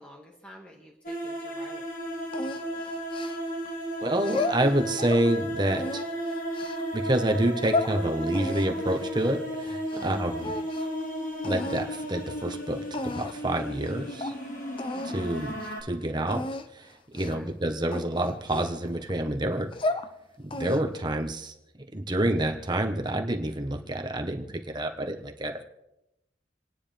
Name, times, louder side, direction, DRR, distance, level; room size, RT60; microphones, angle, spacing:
voice 1, 0.0-1.9 2.4-2.7 9.9-10.4 14.9-15.3 17.1-17.5, equal, 5° left, -2 dB, 1.8 m, -50 dB
sound 1, 1.0-15.8, equal, 50° left, 2.3 m, -34 dB
sound 2, 2.3-3.7 4.2-5.3 5.7-6.8 7.4-7.9 8.3-10.1 10.4-11.0 11.4-11.9 12.5-12.6 12.9-13.5 13.8-13.9 14.2-14.4 14.8-15.2 15.5-15.7 16.3-16.7 17.2-17.5 17.9-19.1 19.6-20.1 20.5-21.0, left 2 dB, 30° left, 0.6 m, -33 dB
voice 2, 4.0-6.0 6.9-10.5 11.4-14.3 15.0-15.5 15.8-16.4 16.7-20.0 20.4-21.5 21.9-25.6, right 1 dB, 25° right, 3 dB, 1.2 m, -28 dB
29.0 x 9.8 x 3.5 m, 0.90 s
head